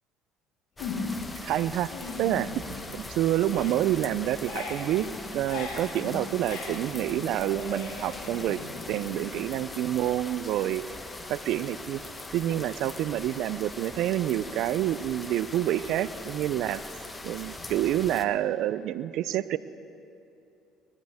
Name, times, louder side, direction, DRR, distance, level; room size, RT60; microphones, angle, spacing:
sound 1, 0.8-1.3 1.7-3.1 3.4-9.9, left 3 dB, 70° left, 3.4 m, -39 dB
sound 2, 0.8-18.2, left 2 dB, 20° left, 1.1 m, -41 dB
voice 1, 1.4-1.9 2.2-2.6 2.9-5.1 5.3-8.6 8.9-10.8 11.3-12.0 12.3-16.8 17.2-19.6, right 12 dB, 70° right, 16 dB, 0.4 m, -28 dB
20.0 x 14.5 x 3.6 m, 2.6 s
supercardioid pair, 80°, 0 cm